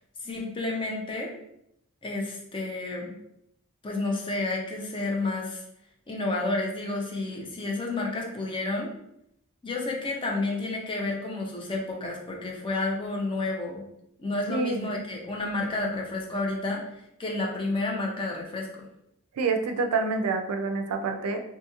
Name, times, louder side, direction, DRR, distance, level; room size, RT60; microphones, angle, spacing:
voice 1, 0.2-1.3 2.0-3.1 3.8-5.6 6.1-8.9 9.6-13.8 14.2-18.9, left 2 dB, 20° left, -1 dB, 0.5 m, -30 dB
voice 2, 19.4-21.4, right 4 dB, 90° right, 6 dB, 0.4 m, -27 dB
2.8 x 2.6 x 2.4 m, 0.77 s
head